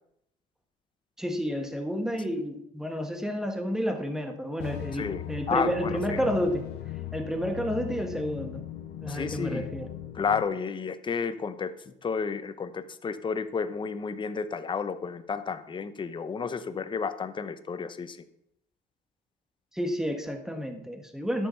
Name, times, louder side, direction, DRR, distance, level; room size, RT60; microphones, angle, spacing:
voice 1, 1.2-6.7 7.1-8.7 9.0-9.9 19.7-21.5, equal, 5° right, 5 dB, 1.4 m, -30 dB
sound 1, 4.6-10.4, left 13 dB, 85° left, 0.8 m, -38 dB
voice 2, 4.9-6.2 9.1-9.6 10.1-18.2, left 5 dB, 30° left, 11 dB, 0.8 m, -31 dB
11.5 x 6.7 x 5.6 m, 0.78 s
cardioid pair, 110°, 17 cm